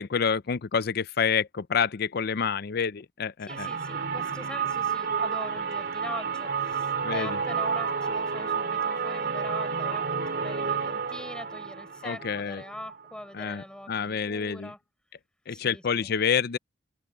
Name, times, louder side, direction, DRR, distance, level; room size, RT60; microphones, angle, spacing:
voice 1, 0.0-3.7 7.0-7.4 12.0-12.6 13.3-14.7 15.5-16.6, left 6 dB, 60° left, 0.5 m, -28 dB
voice 2, 3.4-14.8 15.5-16.1, left 1 dB, 5° left, 6.4 m, -43 dB
sound 1, 3.5-13.2, right 6 dB, 60° right, 2.7 m, -30 dB
head